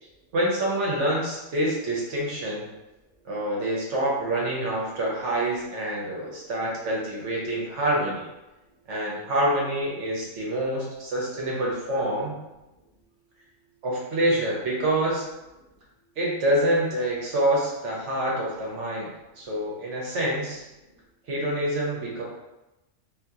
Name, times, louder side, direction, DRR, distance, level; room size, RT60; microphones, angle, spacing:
voice 1, 0.3-2.7 3.2-8.3 8.9-12.4 13.8-15.3 16.2-19.1 19.4-20.6 21.3-22.2, right 1 dB, 70° right, -4 dB, 1.1 m, -26 dB
voice 2, 2.9-3.6 6.2-6.4 8.4-9.3 12.6-13.9 15.6-16.2 18.8-19.6 20.8-21.3, right 2 dB, 55° right, -4 dB, 0.8 m, -63 dB
2.7 x 2.6 x 2.3 m, 0.98 s
omnidirectional pair, 1.3 m